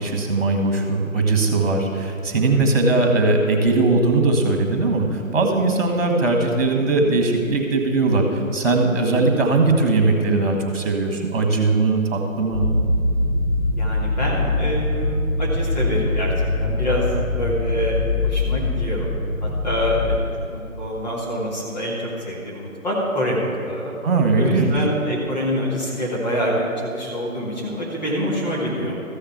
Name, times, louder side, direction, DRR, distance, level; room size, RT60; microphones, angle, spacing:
voice 1, 0.0-12.7 24.0-24.7, right 3 dB, 45° right, 3 dB, 1.9 m, -19 dB
sound 1, 12.5-20.2, left 2 dB, 55° left, 1.6 m, -23 dB
voice 2, 13.8-19.1 19.4-20.1 20.5-23.9 24.4-29.0, equal, 30° left, -5 dB, 2.0 m, -26 dB
14.0 x 6.6 x 6.0 m, 2.6 s
figure-of-eight pair, 155°, 42 cm